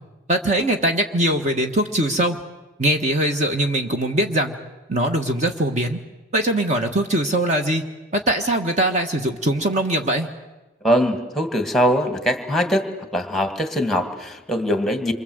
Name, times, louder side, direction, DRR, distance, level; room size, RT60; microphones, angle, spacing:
voice 1, 0.3-2.4 2.8-4.5 4.9-6.0 6.3-7.8 8.1-10.3, right 1 dB, 35° right, 4 dB, 1.4 m, -21 dB
voice 2, 10.8-12.9 13.1-15.1, equal, ahead, 7 dB, 2.0 m, -21 dB
27.5 x 24.5 x 8.0 m, 1.1 s
head